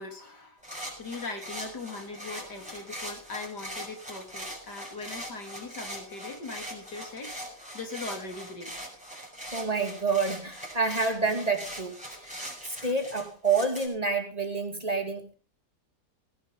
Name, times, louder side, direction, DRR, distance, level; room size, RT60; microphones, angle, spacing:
voice 1, 0.0-7.3 7.7-8.8 12.8-13.0, left 3 dB, 85° left, 4 dB, 4.0 m, -40 dB
sound 1, 0.6-13.9, equal, 5° right, 6.5 m, -41 dB
voice 2, 9.5-15.3, right 4 dB, 25° right, 5 dB, 2.4 m, -28 dB
19.0 x 10.5 x 5.4 m, 0.38 s
omnidirectional pair, 1.7 m